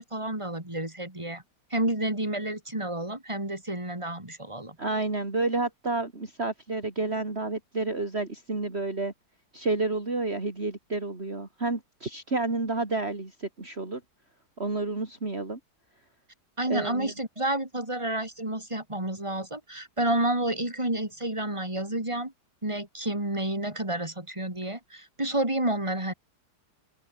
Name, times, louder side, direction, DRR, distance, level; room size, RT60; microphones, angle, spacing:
voice 1, 0.0-1.4 1.7-4.8 16.6-22.3 22.6-26.1, right 1 dB, 15° right, 5.2 m, -30 dB
voice 2, 4.8-9.1 9.5-14.0 14.6-15.6 16.7-17.1, right 3 dB, 35° right, 3.7 m, -30 dB
open air
omnidirectional pair, 1.8 m